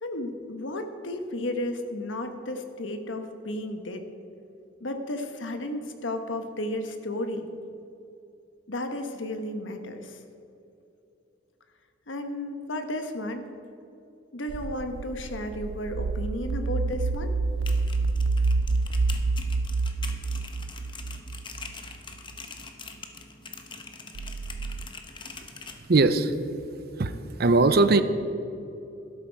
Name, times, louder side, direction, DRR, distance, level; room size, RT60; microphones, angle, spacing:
voice 1, 0.0-4.0 4.8-7.5 8.7-10.2 12.1-13.5 14.3-17.3, left 1 dB, 75° left, 7 dB, 1.2 m, -33 dB
sound 1, 14.5-22.0 24.1-24.9, right 3 dB, 90° right, 0.4 m, -28 dB
sound 2, 17.5-25.8, left 4 dB, 25° left, 1.0 m, -43 dB
voice 2, 25.9-26.3 27.0-27.1 27.4-28.0, right 3 dB, 55° right, 12 dB, 0.6 m, -19 dB
12.5 x 11.5 x 4.6 m, 2.8 s
head